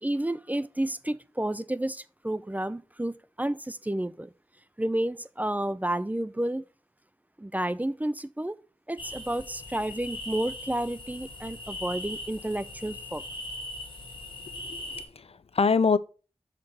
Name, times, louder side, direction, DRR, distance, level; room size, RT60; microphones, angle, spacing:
voice 1, 0.0-4.3 4.8-6.6 7.4-8.6 8.9-13.2, right 1 dB, 15° right, 0.4 m, -31 dB
sound 1, 9.0-15.0, left 1 dB, 50° left, 2.1 m, -40 dB
voice 2, 14.6-16.0, left 5 dB, 65° left, 0.4 m, -25 dB
6.6 x 6.1 x 4.1 m
wide cardioid pair, 70°, 11 cm